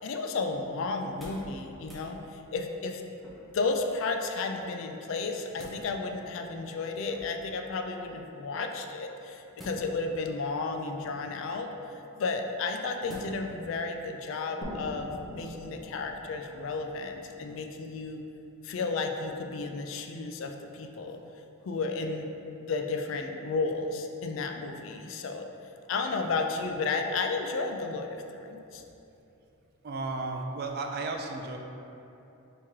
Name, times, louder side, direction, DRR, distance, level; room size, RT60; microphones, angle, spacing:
voice 1, 0.0-3.0 3.5-11.7 12.2-18.2 18.6-21.2 21.6-22.3 22.6-25.5 25.9-28.8, left 3 dB, 60° left, 4 dB, 0.3 m, -33 dB
sound 1, 1.2-1.5 1.8-2.1 3.2-3.7 5.1-5.8 7.1-7.5 9.5-10.2 10.9-11.4 13.1-13.6 14.0-14.1, equal, ahead, 0.6 m, -48 dB
sound 2, 14.6-18.1, equal, 35° left, 0.7 m, -44 dB
voice 2, 29.8-31.6, right 3 dB, 45° right, 3 dB, 0.3 m, -34 dB
3.5 x 2.9 x 4.6 m, 2.9 s
head